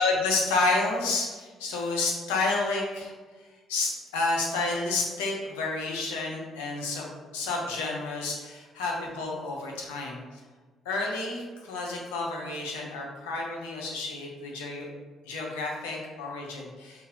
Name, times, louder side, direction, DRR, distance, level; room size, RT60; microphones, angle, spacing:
voice 1, 0.0-10.4 10.8-14.9 15.2-17.0, left 3 dB, 90° left, -1 dB, 0.7 m, -30 dB
5.3 x 2.5 x 2.8 m, 1.4 s
hypercardioid pair, 55°, 0 cm